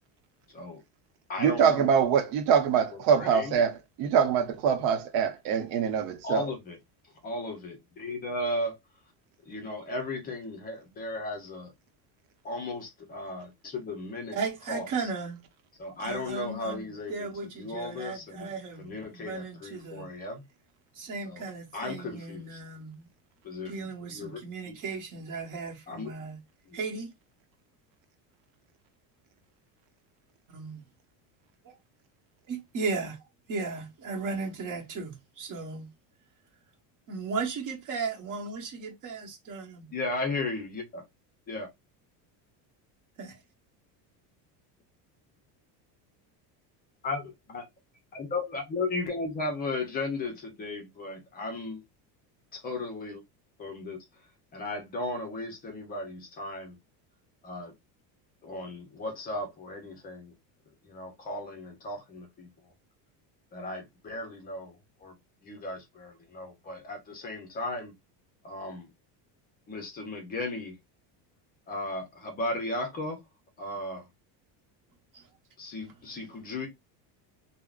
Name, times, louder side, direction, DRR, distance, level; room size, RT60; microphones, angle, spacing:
voice 1, 0.5-0.8 1.3-1.9 2.9-3.6 6.2-6.8 7.2-8.8 9.4-11.7 12.4-14.4 14.7-15.1 15.8-20.4 21.3-21.4 21.7-22.6 23.4-24.7 25.9-26.1 26.7-26.8 39.9-41.0 41.5-41.7 47.0-47.6 48.1-51.8 52.5-53.2 53.6-54.0 54.5-56.8 57.4-57.7 58.4-60.3 60.8-62.7 63.5-65.2 65.4-67.9 68.4-68.9 69.7-70.8 71.7-73.2 73.6-74.1 75.6-76.7, left 2 dB, 20° left, 0.5 m, -36 dB
voice 2, 1.4-6.4, right 7 dB, 70° right, 0.8 m, -24 dB
voice 3, 14.3-15.4 16.0-20.1 20.9-23.1 23.7-26.4 26.7-27.1 30.5-30.8 31.6-31.7 32.5-33.2 33.5-35.9 37.1-39.9 43.2-43.4 75.1-75.2, right 4 dB, 40° right, 1.0 m, -36 dB
3.5 x 2.1 x 2.3 m
cardioid pair, 170°, 45 cm